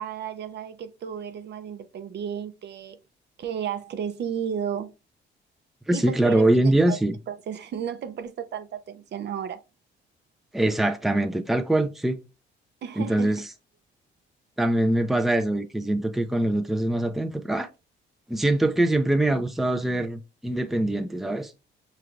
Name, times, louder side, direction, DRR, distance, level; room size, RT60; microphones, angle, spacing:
voice 1, 0.0-3.0 3.4-4.9 5.9-7.0 7.3-9.6 12.8-13.4, right 8 dB, 60° right, 0.6 m, -33 dB
voice 2, 5.9-7.1 10.5-12.2 13.0-13.4 14.6-17.7 18.3-21.5, right 1 dB, ahead, 0.5 m, -23 dB
5.7 x 3.2 x 2.5 m
cardioid pair, 90°, 20 cm